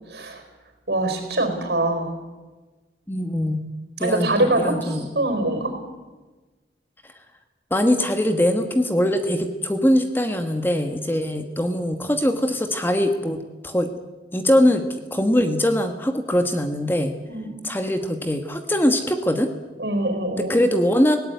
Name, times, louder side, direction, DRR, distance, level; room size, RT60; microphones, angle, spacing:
voice 1, 0.1-0.4 0.9-2.1 4.0-5.7 17.3-17.6 19.8-20.7, right 2 dB, 70° right, 6 dB, 4.8 m, -24 dB
voice 2, 3.1-3.7 4.0-5.1 7.7-13.9 14.3-14.8 15.1-17.1 17.6-19.5 20.4-21.2, left 1 dB, 10° left, 6 dB, 1.3 m, -22 dB
19.0 x 17.5 x 9.5 m, 1.2 s
head